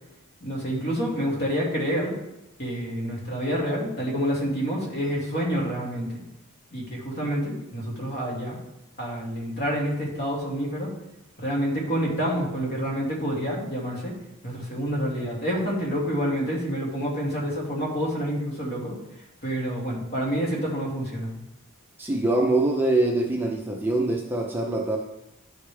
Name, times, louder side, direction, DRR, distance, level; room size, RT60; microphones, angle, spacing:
voice 1, 0.4-2.1 2.6-6.2 6.7-8.6 9.0-10.9 11.4-14.1 14.4-18.9 19.4-21.3, equal, 45° left, -3 dB, 2.2 m, -28 dB
voice 2, 22.0-25.0, right 2 dB, 10° right, -1 dB, 0.6 m, -24 dB
11.0 x 5.1 x 3.4 m, 0.90 s
head